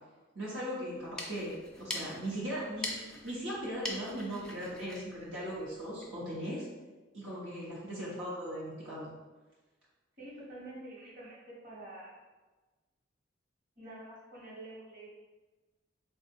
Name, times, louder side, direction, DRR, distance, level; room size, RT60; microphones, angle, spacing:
voice 1, 0.3-1.5 1.8-2.9 3.2-6.6 7.1-9.1, equal, 70° right, -8 dB, 1.1 m, -38 dB
sound 1, 0.9-6.2, left 1 dB, 5° left, 0.5 m, -43 dB
voice 2, 10.2-11.4 11.6-12.2 13.8-15.1, right 1 dB, 45° right, -7 dB, 1.4 m, -47 dB
3.6 x 2.5 x 4.2 m, 1.2 s
head